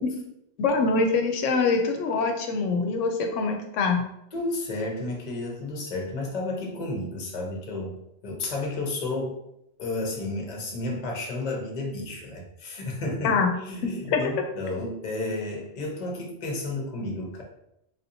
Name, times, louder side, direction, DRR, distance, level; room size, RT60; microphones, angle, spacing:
voice 1, 0.6-4.0 13.2-13.5 13.8-14.3, left 4 dB, 85° left, 4 dB, 0.9 m, -24 dB
voice 2, 4.3-9.4 9.8-17.4, left 2 dB, 40° left, 1 dB, 0.8 m, -32 dB
3.8 x 2.8 x 2.6 m, 0.79 s
omnidirectional pair, 1.2 m